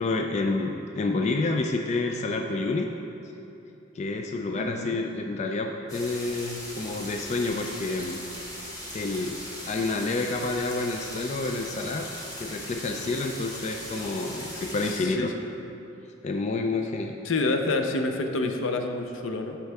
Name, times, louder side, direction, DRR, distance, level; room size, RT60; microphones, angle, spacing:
voice 1, 0.0-2.9 3.9-8.2 8.9-9.4 9.7-12.1 12.4-15.3 16.2-17.1, left 3 dB, 35° left, 3 dB, 0.3 m, -29 dB
voice 2, 4.5-5.0 14.9-15.3 17.2-19.6, left 3 dB, 80° left, 5 dB, 0.6 m, -28 dB
sound 1, 5.9-15.0, left 1 dB, 20° left, 1.1 m, -39 dB
11.5 x 4.6 x 3.5 m, 3.0 s
head